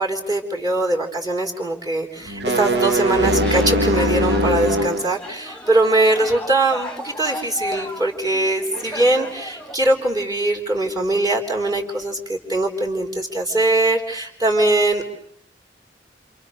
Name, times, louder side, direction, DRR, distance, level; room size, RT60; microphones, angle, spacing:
voice 1, 0.0-15.0, right 2 dB, 20° right, 3 dB, 4.2 m, -21 dB
sound 1, 2.3-5.1, equal, 65° right, 1.7 m, -20 dB
sound 2, 3.4-9.8, left 1 dB, 5° left, 1.9 m, -35 dB
29.0 x 28.5 x 6.7 m, 0.69 s
head